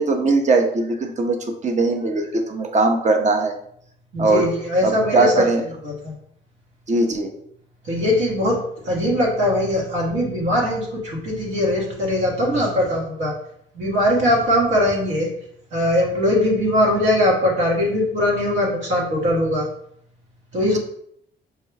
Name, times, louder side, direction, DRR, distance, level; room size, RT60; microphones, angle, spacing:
voice 1, 0.0-3.5 4.2-4.5 4.8-5.6 6.9-7.3, right 3 dB, 35° right, 4 dB, 0.7 m, -20 dB
voice 2, 4.1-6.1 7.8-13.3 13.7-15.3 15.7-19.7 20.5-20.8, left 1 dB, 75° right, -3 dB, 1.3 m, -21 dB
5.5 x 2.2 x 3.4 m, 0.69 s
cardioid pair, 90°, 20 cm